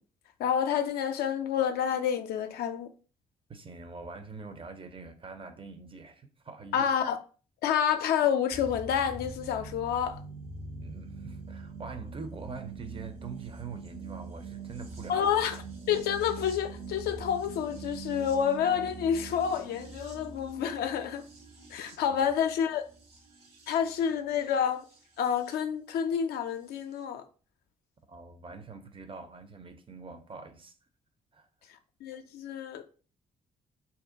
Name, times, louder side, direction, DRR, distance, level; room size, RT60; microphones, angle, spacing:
voice 1, 0.4-2.9 6.7-7.2 7.6-10.2 15.1-15.6 15.9-21.3 21.7-22.8 23.7-24.8 25.2-27.2 32.0-32.8, left 8 dB, 60° left, 0.4 m, -28 dB
voice 2, 3.5-6.9 10.8-15.5 28.1-30.7 31.3-31.5, right 4 dB, 30° right, 0.5 m, -44 dB
sound 1, 8.5-25.5 26.7-26.8, right 4 dB, 70° right, 0.9 m, -44 dB
2.6 x 2.1 x 3.7 m
figure-of-eight pair, 40°, 19 cm